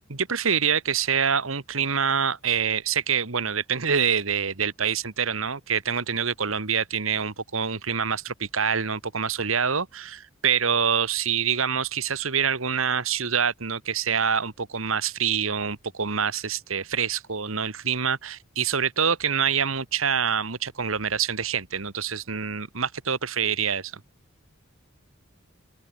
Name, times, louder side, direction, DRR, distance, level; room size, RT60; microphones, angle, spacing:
voice 1, 0.1-23.9, right 7 dB, 80° right, 1.8 m, -26 dB
open air
head